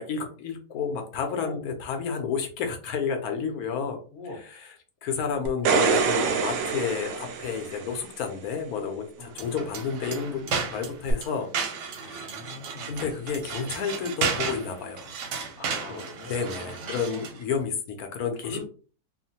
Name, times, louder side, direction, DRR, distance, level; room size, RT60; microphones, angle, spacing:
voice 1, 0.0-4.0 4.4-4.5 5.0-11.5 11.9-12.4 12.8-15.1 15.8-18.6, left 6 dB, 70° left, 5 dB, 1.0 m, -31 dB
voice 2, 4.1-4.5 9.2-9.3 12.0-13.0 15.6-17.4 18.4-18.6, left 3 dB, 45° left, -1 dB, 1.0 m, -42 dB
sound 1, 5.5-8.0 11.1-11.2, right 6 dB, 70° right, 0.9 m, -25 dB
sound 2, 9.3-17.4, right 5 dB, 90° right, 1.3 m, -33 dB
3.0 x 2.1 x 2.7 m, 0.38 s
omnidirectional pair, 1.8 m